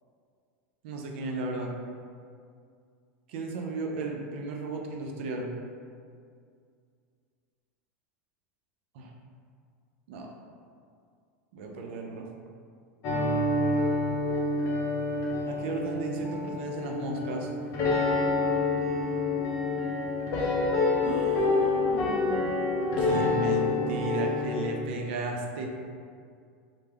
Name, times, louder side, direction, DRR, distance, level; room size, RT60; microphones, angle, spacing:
voice 1, 0.8-1.7 3.3-5.5 8.9-9.1 10.1-10.3 11.5-12.3 15.5-17.5 21.0-22.5 23.0-25.7, right 3 dB, 65° right, 1 dB, 0.4 m, -34 dB
sound 1, 13.0-24.7, left 3 dB, 45° left, 0.5 m, -27 dB
2.2 x 2.0 x 3.3 m, 2.2 s
hypercardioid pair, 105°, 7 cm